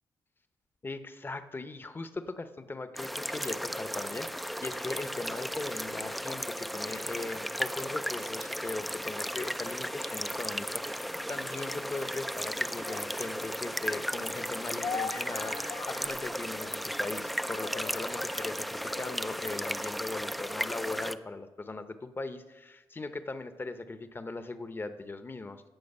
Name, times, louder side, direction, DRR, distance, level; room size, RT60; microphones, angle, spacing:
voice 1, 0.8-25.6, left 3 dB, 25° left, 10 dB, 0.8 m, -39 dB
sound 1, 3.0-21.2, equal, ahead, 0.4 m, -35 dB
sound 2, 12.8-16.8 17.1-18.5 18.8-19.1 19.4-19.5, left 5 dB, 70° left, 1.4 m, -42 dB
17.0 x 6.4 x 5.4 m, 1.1 s
cardioid pair, 105°, 9 cm